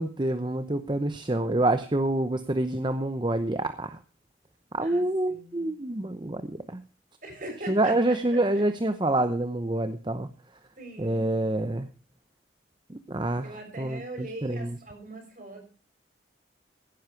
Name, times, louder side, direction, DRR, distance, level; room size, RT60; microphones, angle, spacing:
voice 1, 0.0-4.0 4.7-6.8 7.7-10.3 11.0-11.9 12.9-13.5 13.8-14.8, right 1 dB, 25° right, 10 dB, 0.7 m, -27 dB
voice 2, 4.8-5.7 7.2-8.2 10.8-11.2 13.4-15.6, right 2 dB, 45° right, 4 dB, 6.1 m, -41 dB
16.5 x 10.0 x 4.6 m, 0.36 s
head